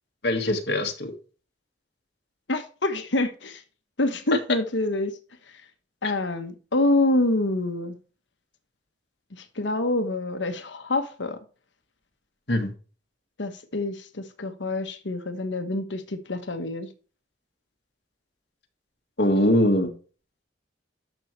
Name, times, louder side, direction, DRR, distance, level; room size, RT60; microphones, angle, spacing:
voice 1, 0.2-1.1 12.5-12.7 19.2-19.9, left 1 dB, 60° left, 1.9 m, -22 dB
voice 2, 2.5-3.6 4.0-5.2 5.5-5.6 6.0-8.0 9.3-11.4 13.4-16.9, left 2 dB, 80° left, 1.3 m, -26 dB
11.5 x 6.4 x 3.3 m
head